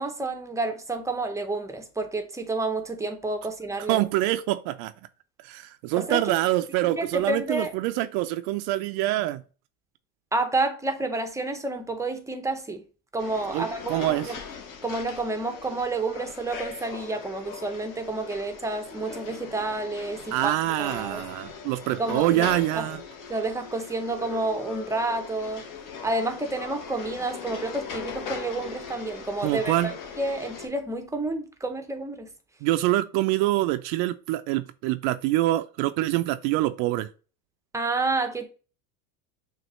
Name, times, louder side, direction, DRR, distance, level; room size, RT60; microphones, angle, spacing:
voice 1, 0.0-4.1 6.0-6.2 6.8-7.7 10.3-12.8 13.1-14.4 14.8-20.5 20.8-21.2 22.0-22.5 22.7-22.9 23.3-25.7 26.0-29.9 30.2-32.3 37.7-38.4, right 2 dB, 5° right, 0.6 m, -29 dB
voice 2, 3.9-4.9 5.4-9.4 13.5-14.3 20.3-23.0 29.4-29.9 32.6-37.1, right 16 dB, 60° right, 0.5 m, -25 dB
sound 1, 13.2-30.7, left 6 dB, 50° left, 1.2 m, -40 dB
6.3 x 2.5 x 3.0 m
supercardioid pair, 115°, 41 cm